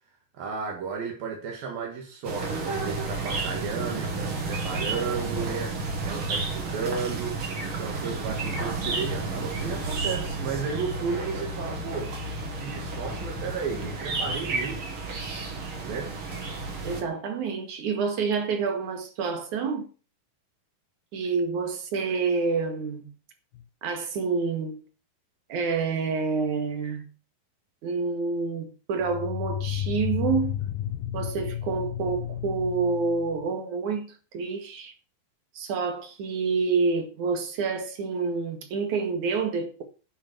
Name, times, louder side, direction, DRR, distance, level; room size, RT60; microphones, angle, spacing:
voice 1, 0.4-12.2 12.5-15.0 15.8-16.1, right 5 dB, 80° right, 3.9 m, -34 dB
sound 1, 2.2-17.0, right 3 dB, 40° right, 2.9 m, -31 dB
voice 2, 16.8-19.9 21.1-23.1 23.8-24.8 25.5-27.1 27.8-30.6 31.1-34.9 35.5-39.8, right 4 dB, 60° right, 3.1 m, -28 dB
sound 2, 23.5-23.6 29.0-33.5, left 11 dB, 85° left, 2.7 m, -32 dB
11.0 x 7.6 x 6.9 m
omnidirectional pair, 4.1 m